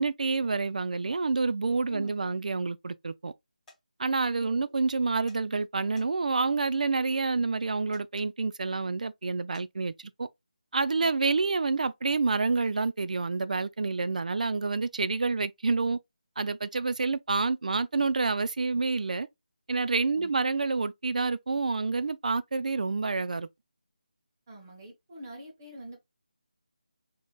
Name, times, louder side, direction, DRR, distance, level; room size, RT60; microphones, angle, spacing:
voice 1, 0.0-3.3 4.0-9.9 10.2-10.3 10.7-16.0 16.4-19.3 19.7-23.5, right 4 dB, 60° right, 0.4 m, -28 dB
voice 2, 1.9-2.4 4.3-4.7 20.1-20.5 24.5-26.0, equal, 25° right, 1.2 m, -45 dB
sound 1, 3.7-3.8 5.3-5.4 6.0-6.4 7.9-8.1 9.5-9.7, left 1 dB, 5° left, 1.0 m, -54 dB
4.4 x 2.9 x 2.3 m
figure-of-eight pair, 165°, 5 cm